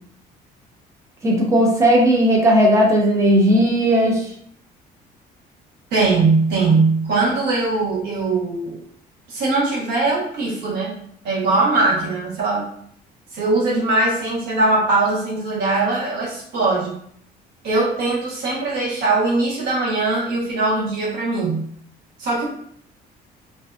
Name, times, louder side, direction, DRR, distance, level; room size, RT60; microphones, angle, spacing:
voice 1, 1.2-4.3, equal, 15° right, -2 dB, 0.6 m, -16 dB
voice 2, 5.9-8.8 9.3-11.0 11.2-12.7 13.3-17.0 17.6-21.6 22.2-22.4, right 3 dB, 80° right, -4 dB, 1.0 m, -20 dB
2.6 x 2.3 x 2.3 m, 0.64 s
cardioid pair, 110°, 17 cm